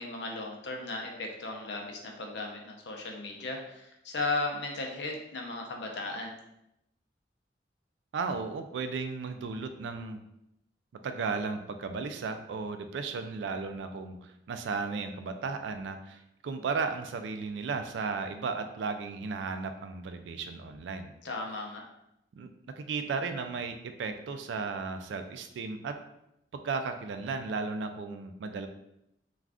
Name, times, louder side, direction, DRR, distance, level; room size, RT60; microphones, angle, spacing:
voice 1, 0.0-6.3 21.2-21.8, left 2 dB, 80° left, 2 dB, 0.5 m, -36 dB
voice 2, 8.1-10.2 11.0-21.1 22.4-22.5 22.8-26.0 26.5-28.7, right 4 dB, 90° right, 8 dB, 0.3 m, -35 dB
2.4 x 2.3 x 3.4 m, 0.82 s
head